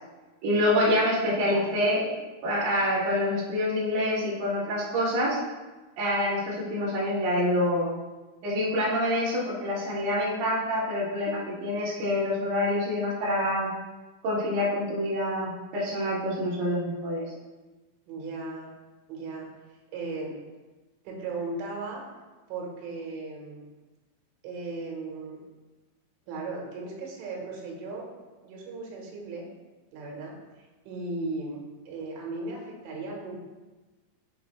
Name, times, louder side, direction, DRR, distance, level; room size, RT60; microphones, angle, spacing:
voice 1, 0.4-2.1 2.4-5.4 6.0-7.9 8.4-13.7 14.2-17.2, left 1 dB, 50° right, -8 dB, 2.7 m, -26 dB
voice 2, 1.4-1.8 18.1-18.7 19.1-19.5 19.9-20.3 21.1-22.0 22.5-23.6 24.4-25.4 26.3-28.1 28.4-29.5 29.9-30.3 30.9-31.6 31.9-33.4, right 3 dB, 80° right, -2 dB, 3.7 m, -36 dB
9.4 x 6.1 x 2.2 m, 1.2 s
omnidirectional pair, 5.5 m